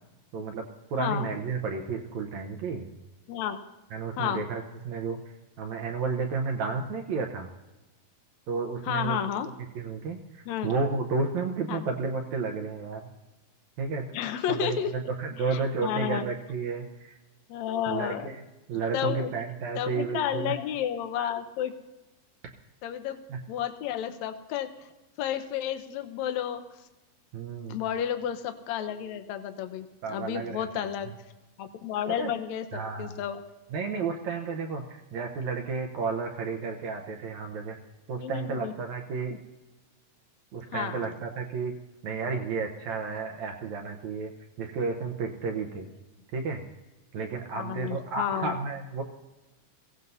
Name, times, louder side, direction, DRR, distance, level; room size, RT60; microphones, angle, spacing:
voice 1, 0.3-2.9 3.9-5.2 5.6-7.5 8.5-9.2 9.8-13.1 13.8-14.1 14.5-16.9 17.9-18.4 18.7-20.6 23.3-23.4 27.3-27.8 30.0-30.9 32.2-32.3 32.7-33.1 33.7-37.8 38.1-39.4 40.5-41.8 42.0-44.3 44.6-45.9 46.3-46.6 47.1-49.0, right 4 dB, 70° right, 3 dB, 1.9 m, -32 dB
voice 2, 8.8-9.5 10.5-10.7 11.7-11.9 14.1-14.9 15.5-16.3 17.5-18.2 18.9-19.3 19.7-21.7 22.8-23.2 23.5-24.7 25.2-26.6 27.7-31.1 31.6-33.4 38.2-38.7 39.3-39.4 40.7-41.1 47.6-48.6, left 10 dB, 70° left, 8 dB, 1.8 m, -31 dB
23.0 x 16.5 x 2.7 m, 1.1 s
omnidirectional pair, 4.0 m